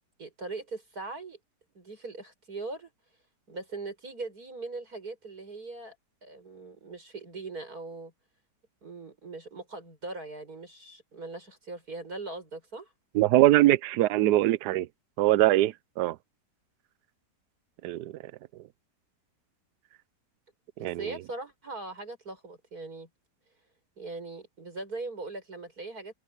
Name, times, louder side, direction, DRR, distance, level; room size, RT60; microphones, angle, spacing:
voice 1, 0.2-1.4 1.7-2.9 3.5-6.0 6.2-8.1 8.8-12.9 20.8-23.1 24.0-26.1, right 3 dB, 55° right, 7.2 m, -40 dB
voice 2, 13.1-14.9 15.2-16.2 17.8-18.1 20.8-21.0, right 15 dB, 70° right, 1.2 m, -22 dB
omnidirectional pair, 1.9 m